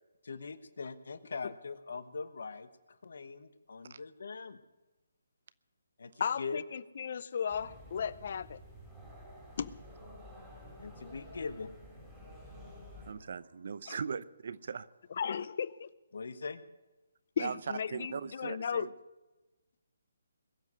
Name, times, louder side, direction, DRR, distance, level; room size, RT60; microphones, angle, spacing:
voice 1, 0.2-4.6 6.0-6.6 10.8-11.8 16.1-16.6, left 4 dB, 65° left, 12 dB, 1.2 m, -42 dB
voice 2, 6.2-8.6 9.6-9.8 13.9-14.0 15.1-15.9 17.4-18.9, left 7 dB, 50° left, 19 dB, 0.6 m, -35 dB
sound 1, 7.5-13.1, equal, 5° right, 4.9 m, -51 dB
voice 3, 13.0-14.9 17.4-18.9, right 6 dB, 60° right, 17 dB, 0.7 m, -39 dB
21.5 x 7.3 x 8.1 m, 1.1 s
figure-of-eight pair, 150°, 0 cm